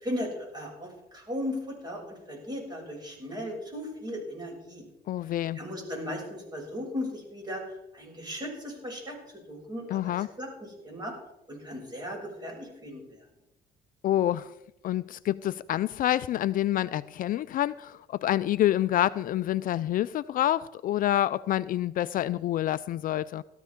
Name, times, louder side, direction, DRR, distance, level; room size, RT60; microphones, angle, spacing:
voice 1, 0.0-4.9 5.6-7.6 7.9-9.2 9.5-11.1 11.5-13.0, left 1 dB, 25° right, 6.9 m, -37 dB
voice 2, 5.1-5.6 9.9-10.3 14.0-14.5 14.8-23.4, left 13 dB, 55° left, 0.4 m, -27 dB
18.0 x 13.5 x 3.7 m
cardioid pair, 110°, 17 cm